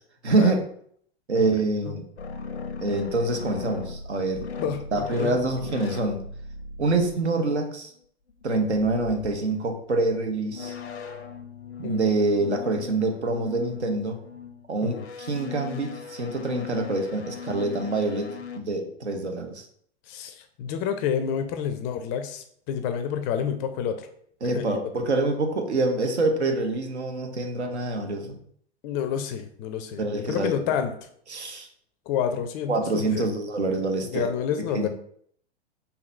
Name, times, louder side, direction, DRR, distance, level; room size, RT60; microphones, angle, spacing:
voice 1, 0.2-0.6 1.3-2.1 2.8-4.5 4.9-6.2 6.8-7.9 8.4-10.7 11.8-14.2 14.7-19.7 24.4-28.4 30.0-30.6 31.3-31.7 32.7-34.3 34.7-34.9, right 2 dB, 85° right, 5 dB, 0.9 m, -26 dB
sound 1, 2.2-7.6 8.3-18.6, left 5 dB, 90° left, 0.6 m, -39 dB
voice 2, 4.6-5.3 11.8-12.1 14.8-15.0 20.1-24.1 24.5-24.8 28.8-30.9 32.1-33.3 34.1-34.9, left 8 dB, 30° left, 8 dB, 0.4 m, -29 dB
3.8 x 2.8 x 4.2 m, 0.63 s
hypercardioid pair, 105°, 33 cm